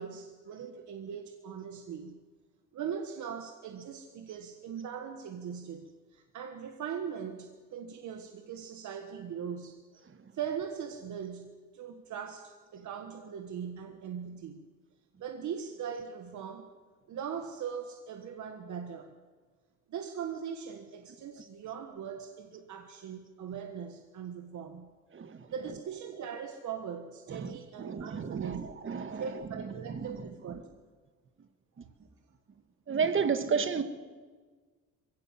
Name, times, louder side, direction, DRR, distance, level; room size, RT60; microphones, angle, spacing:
voice 1, 0.0-2.2 2.7-9.8 10.3-14.6 15.2-16.7 17.1-19.1 19.9-24.9 25.5-28.6 29.2-30.7, right 7 dB, 70° right, 1.6 m, -40 dB
voice 2, 25.1-25.5 27.3-30.2 32.9-33.8, right 6 dB, 40° right, 1.7 m, -32 dB
22.0 x 17.0 x 7.7 m
cardioid pair, 90°, 30 cm